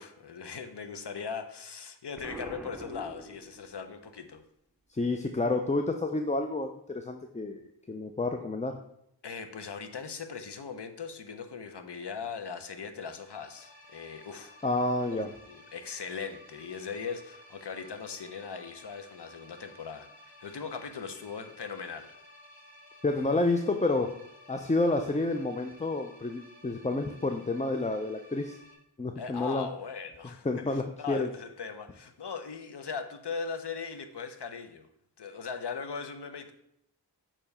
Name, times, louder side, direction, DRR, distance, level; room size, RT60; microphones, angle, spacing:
voice 1, 0.0-4.4 9.2-14.6 15.1-15.2 15.5-22.1 29.2-34.9 35.2-36.5, left 5 dB, 70° left, 8 dB, 0.7 m, -39 dB
Explosion, 2.2-4.0, right 1 dB, 5° right, 0.7 m, -44 dB
voice 2, 4.9-8.8 14.6-15.3 23.0-24.1 24.5-28.6 29.0-29.7 30.4-31.3, left 2 dB, 15° left, 5 dB, 0.4 m, -29 dB
sound 1, 13.0-28.8, left 1 dB, 90° left, 1.4 m, -55 dB
6.8 x 3.0 x 5.4 m, 0.76 s
wide cardioid pair, 50°, 43 cm